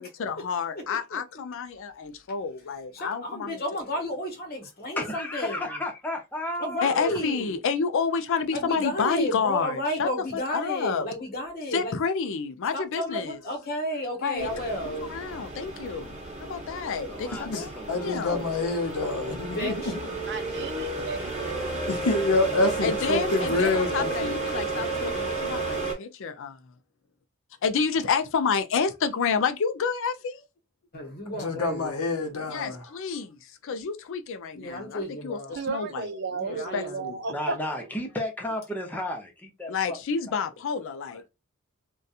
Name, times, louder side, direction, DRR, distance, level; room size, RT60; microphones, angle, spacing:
voice 1, 0.0-3.6 6.8-11.1 11.7-13.4 14.2-14.5 14.8-16.2 16.5-17.7 18.0-18.4 22.8-26.6 27.6-30.4 32.5-33.4 33.6-36.1 36.5-37.2 39.7-41.2, left 5 dB, 60° left, 0.4 m, -29 dB
voice 2, 2.9-5.6 6.6-7.6 8.5-12.0 12.7-15.1 19.2-19.9 30.9-32.0 34.5-35.6 36.3-37.0, left 1 dB, 45° left, 0.9 m, -32 dB
voice 3, 5.0-7.1 17.1-18.4 37.3-40.0 40.3-40.4, left 1 dB, 10° left, 0.6 m, -34 dB
sound 1, 14.4-25.9, right 3 dB, 30° right, 1.1 m, -32 dB
voice 4, 17.4-20.1 21.9-24.4 31.3-32.9, left 2 dB, 90° left, 0.7 m, -27 dB
voice 5, 20.2-21.7 35.5-37.6, right 4 dB, 50° right, 0.5 m, -33 dB
2.7 x 2.3 x 2.3 m
head